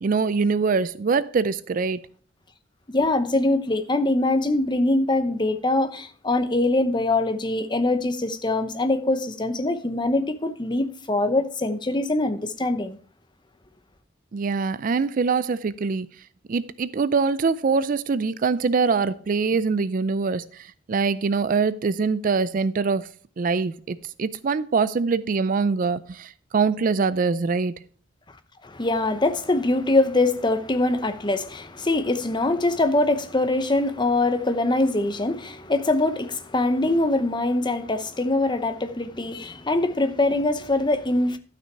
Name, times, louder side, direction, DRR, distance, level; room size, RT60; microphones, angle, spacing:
voice 1, 0.0-2.0 14.3-16.1 16.5-23.1 23.4-27.8, right 4 dB, 45° right, 0.4 m, -23 dB
voice 2, 2.9-13.0 28.6-41.4, left 2 dB, 25° left, 0.8 m, -23 dB
12.5 x 6.0 x 4.6 m
head